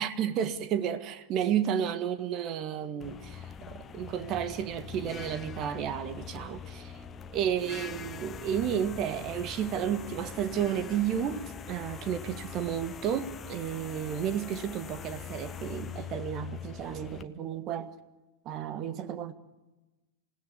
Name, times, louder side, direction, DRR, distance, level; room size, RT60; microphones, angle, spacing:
voice 1, 0.0-6.9 7.3-17.9 18.4-19.3, right 9 dB, 35° right, 1.8 m, -32 dB
sound 1, 3.0-17.2, left 7 dB, 25° left, 1.3 m, -43 dB
27.0 x 17.0 x 9.9 m
figure-of-eight pair, 90°, 0 cm